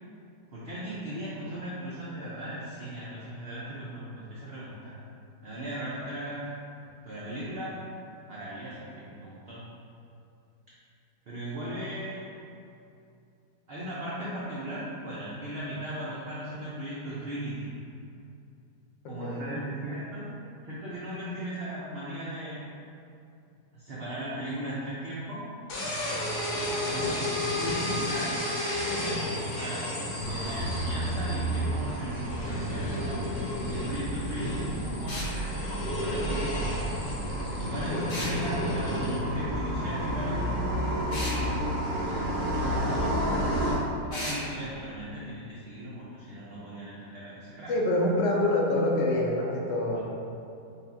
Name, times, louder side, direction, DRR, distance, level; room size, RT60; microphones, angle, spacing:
voice 1, 0.5-4.9 5.4-6.5 7.0-7.8 8.3-9.6 11.3-12.3 13.7-17.7 19.1-20.3 20.6-22.6 23.7-25.4 26.9-28.4 29.0-29.9 30.2-33.2 33.7-36.7 37.5-41.2 41.9-47.7, right 1 dB, 85° right, -8 dB, 0.5 m, -37 dB
voice 2, 19.0-19.5 37.9-38.2 47.7-50.0, left 1 dB, 85° left, -1 dB, 1.3 m, -26 dB
sound 1, 25.7-39.2, left 1 dB, 70° left, 1.3 m, -33 dB
sound 2, 30.2-43.7, right 1 dB, 70° right, 1.3 m, -31 dB
sound 3, 35.1-35.3 38.1-38.4 41.1-41.4 44.1-44.4, left 1 dB, 55° left, 0.6 m, -34 dB
5.3 x 2.4 x 2.6 m, 2.6 s
omnidirectional pair, 1.8 m